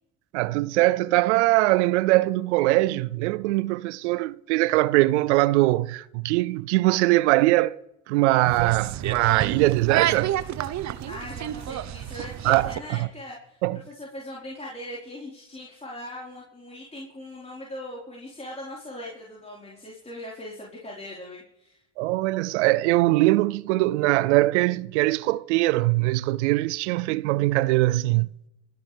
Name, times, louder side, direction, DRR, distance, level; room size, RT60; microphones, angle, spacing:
voice 1, 0.3-7.8 8.1-10.3 12.4-13.0 13.6-13.8 22.0-28.3, right 19 dB, 80° right, 0.5 m, -22 dB
sound 1, 8.4-12.8, right 12 dB, 55° right, 1.1 m, -29 dB
voice 2, 11.1-21.8, left 1 dB, 20° left, 4.8 m, -40 dB
27.5 x 12.0 x 3.5 m
hypercardioid pair, 60°, 35 cm